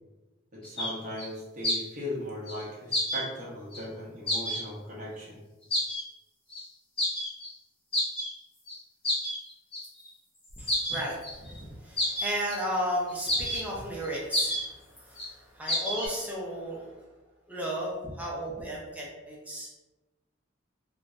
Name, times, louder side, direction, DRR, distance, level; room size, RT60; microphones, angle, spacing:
voice 1, 0.5-5.4, left 1 dB, 40° right, -6 dB, 0.9 m, -38 dB
sound 1, 0.6-0.9 1.2-1.3 1.6-1.8 2.5-2.6 2.9-3.2 3.7-3.8 4.3-4.6 5.7-6.0 6.5-6.6 7.0-7.5 7.9-8.3 8.7-8.8 9.0-10.1 10.6-11.6 12.0-12.6 13.1-13.7 14.0-14.1 14.3-14.6 15.0-15.3 15.7-16.1, equal, 30° left, 0.8 m, -29 dB
voice 2, 10.6-17.0 17.5-19.7, equal, 10° right, -4 dB, 0.5 m, -34 dB
3.2 x 2.1 x 2.4 m, 1.1 s
head